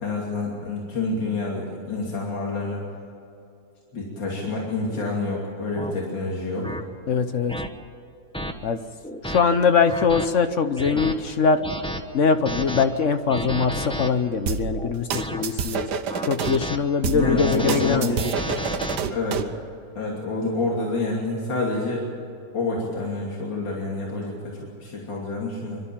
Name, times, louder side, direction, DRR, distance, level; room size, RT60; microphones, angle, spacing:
voice 1, 0.0-2.8 3.9-6.7 17.1-18.3 19.1-19.4 20.0-22.1 22.5-24.3 24.8-25.8, left 2 dB, 80° left, -3 dB, 3.6 m, -27 dB
sound 1, 4.9-5.1 5.8-5.9 6.6-6.8 7.5-7.7 8.3-8.5 9.0-9.4 9.9-10.3 10.8-11.1 11.6-12.0 12.5-12.9 13.3-14.1 14.7-15.4 16.1-16.8 17.2-19.0, equal, 5° left, 0.7 m, -31 dB
voice 2, 7.1-7.5 8.6-8.8 9.2-11.6 12.1-15.9 16.2-18.1, left 5 dB, 50° left, 9 dB, 1.0 m, -22 dB
sound 2, 14.5-16.6 17.0-19.5, right 7 dB, 65° right, 1.5 m, -28 dB
26.0 x 12.5 x 8.8 m, 2.5 s
omnidirectional pair, 2.0 m